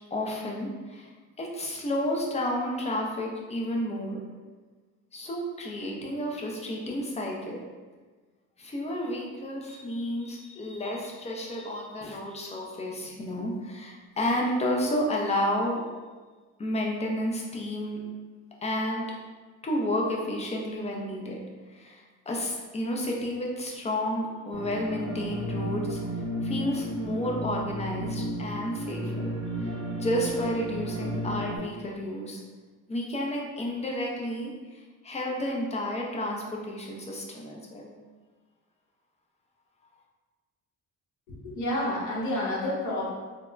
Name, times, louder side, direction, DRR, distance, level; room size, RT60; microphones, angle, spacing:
voice 1, 0.1-1.1 1.4-4.3 5.1-7.6 8.6-15.8 16.6-18.0 18.6-19.1 19.6-21.4 21.7-26.0 26.4-29.3 29.6-32.4 32.9-37.9, left 1 dB, 20° left, -1 dB, 0.5 m, -31 dB
sound 1, 24.5-31.6, right 1 dB, 55° right, 0.7 m, -33 dB
voice 2, 41.3-43.1, left 1 dB, 60° left, -6 dB, 1.1 m, -29 dB
3.4 x 2.0 x 2.4 m, 1.4 s
cardioid pair, 100°, 33 cm